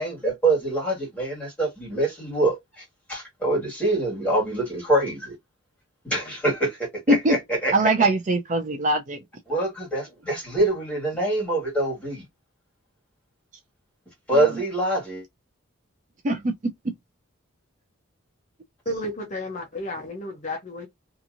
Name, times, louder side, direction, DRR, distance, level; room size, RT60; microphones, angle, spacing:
voice 1, 0.0-5.3 6.0-7.7 9.5-12.2 14.3-15.2, right 2 dB, 5° left, 1.8 m, -25 dB
voice 2, 7.7-9.2 14.3-14.5 16.2-16.5, right 2 dB, 35° right, 0.4 m, -22 dB
voice 3, 18.9-20.9, left 1 dB, 35° left, 0.6 m, -32 dB
2.8 x 2.5 x 2.5 m
head